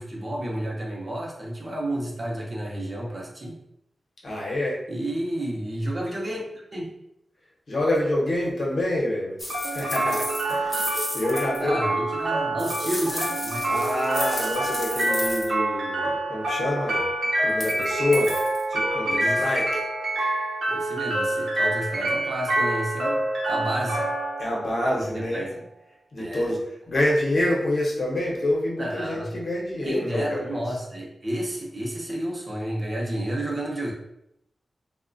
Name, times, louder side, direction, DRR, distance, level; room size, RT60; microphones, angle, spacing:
voice 1, 0.0-3.6 4.9-6.4 6.7-6.9 11.6-13.7 19.0-19.4 20.7-24.1 24.9-25.0 25.3-25.6 26.2-26.5 28.8-29.3 29.9-33.9, right 1 dB, 35° right, -3 dB, 0.6 m, -31 dB
voice 2, 4.2-4.8 7.7-11.8 13.7-17.1 17.4-18.3 18.7-19.8 24.4-25.5 26.1-30.6, left 1 dB, 60° left, -4 dB, 0.8 m, -27 dB
sound 1, 9.4-11.6 12.6-15.5 17.5-17.9 18.1-18.6 19.5-19.6, left 1 dB, 15° left, 0.5 m, -33 dB
sound 2, 9.5-25.5, right 1 dB, 75° right, 0.7 m, -27 dB
2.8 x 2.1 x 2.5 m, 0.80 s
wide cardioid pair, 120°, 0 cm